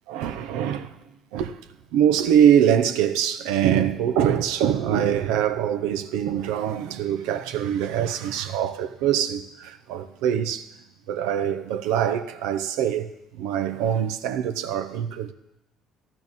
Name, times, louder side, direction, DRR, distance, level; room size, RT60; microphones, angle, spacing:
voice 1, 0.1-0.9 1.3-1.6 1.9-10.7 11.1-15.3, right 9 dB, 85° right, 0.7 m, -23 dB
12.5 x 6.2 x 8.8 m
cardioid pair, 95°, 0 cm